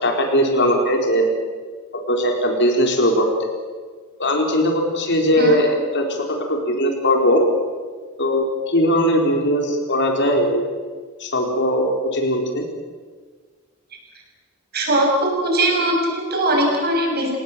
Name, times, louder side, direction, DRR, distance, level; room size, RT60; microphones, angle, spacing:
voice 1, 0.0-1.3 1.9-3.5 4.2-6.1 6.5-7.4 8.2-10.7 11.2-12.6, equal, 60° left, 2 dB, 4.3 m, -19 dB
voice 2, 14.7-17.4, right 1 dB, 50° right, 1 dB, 7.0 m, -20 dB
28.5 x 18.5 x 7.6 m, 1.5 s
head